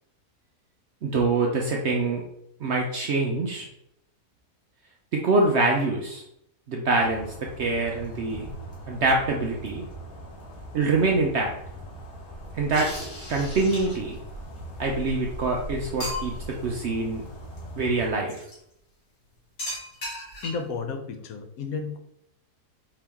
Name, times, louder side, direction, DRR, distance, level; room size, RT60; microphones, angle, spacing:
voice 1, 1.0-2.2 2.6-3.7 5.1-6.2 6.7-8.5 8.9-9.8 10.7-11.5 12.5-12.9 13.3-14.2 14.8-17.2 17.8-18.4, right 3 dB, 65° right, 0 dB, 0.7 m, -25 dB
sound 1, 6.9-18.1, right 1 dB, 90° left, 1.8 m, -40 dB
sound 2, 12.7-14.2 15.1-15.2 15.5-15.6 16.0-16.6 18.3-18.6 19.6-20.8, left 1 dB, 40° left, 1.8 m, -36 dB
voice 2, 20.4-22.0, left 5 dB, 70° left, 4 dB, 1.0 m, -32 dB
4.5 x 2.9 x 3.5 m, 0.76 s
omnidirectional pair, 1.7 m